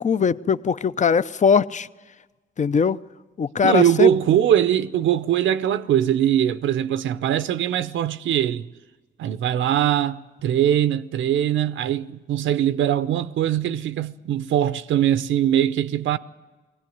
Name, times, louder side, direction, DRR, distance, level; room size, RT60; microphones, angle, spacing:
voice 1, 0.0-1.9 2.6-3.0 3.4-4.1, left 6 dB, 40° left, 0.6 m, -20 dB
voice 2, 3.6-8.7 9.2-16.2, right 10 dB, 80° right, 0.7 m, -21 dB
19.5 x 17.0 x 9.4 m
cardioid pair, 70°, 20 cm